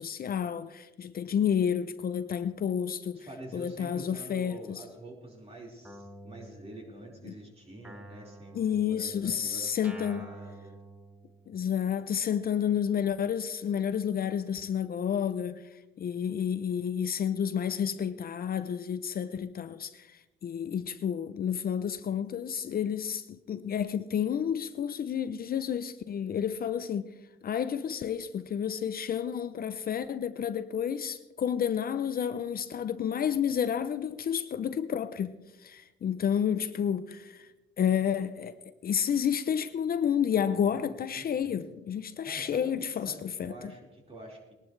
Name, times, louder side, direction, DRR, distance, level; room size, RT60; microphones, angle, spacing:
voice 1, 0.0-3.3 3.5-4.8 7.3-7.4 8.5-10.3 11.5-15.6 16.0-27.1 27.4-37.5 37.8-38.5 38.8-43.5, left 8 dB, 50° left, 0.6 m, -30 dB
voice 2, 3.1-10.8 40.6-40.9 41.2-41.6 42.2-42.7 43.0-44.5, right 1 dB, 30° right, 4.7 m, -46 dB
Guitar, 5.8-7.4 7.8-11.7, right 1 dB, 5° right, 1.6 m, -49 dB
20.0 x 11.5 x 3.3 m
cardioid pair, 90°, 20 cm